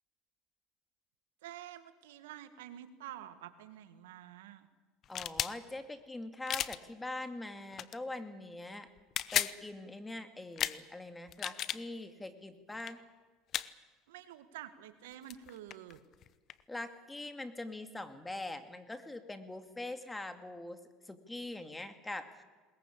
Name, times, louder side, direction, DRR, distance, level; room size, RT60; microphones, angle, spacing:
voice 1, 1.4-4.7 14.1-16.0, right 12 dB, 90° right, 11 dB, 1.7 m, -49 dB
sound 1, 5.0-5.5 6.5-6.8 7.7-8.0 9.0-9.6 10.6-10.8 11.3-11.8 12.8-12.9 13.5-13.7 15.0-15.1 15.3-16.6, left 11 dB, 50° left, 0.9 m, -34 dB
voice 2, 5.1-8.9 9.3-13.0 16.7-22.4, left 2 dB, 10° left, 9 dB, 2.4 m, -43 dB
21.0 x 21.0 x 8.6 m, 1.4 s
supercardioid pair, 105°, 0 cm